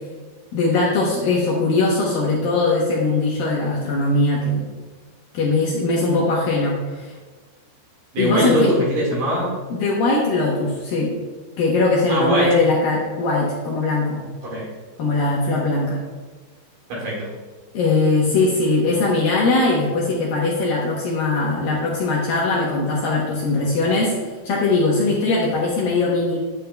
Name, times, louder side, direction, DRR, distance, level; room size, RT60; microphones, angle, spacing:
voice 1, 0.5-4.6 5.3-7.1 8.2-8.7 9.7-11.1 11.6-14.2 15.0-16.0 17.7-24.1 24.4-26.4, left 3 dB, 70° left, -4 dB, 2.3 m, -20 dB
voice 2, 8.1-9.5 12.1-12.5 14.4-14.7 16.9-17.3, equal, 55° right, -4 dB, 3.2 m, -21 dB
9.3 x 9.0 x 2.3 m, 1.3 s
omnidirectional pair, 5.1 m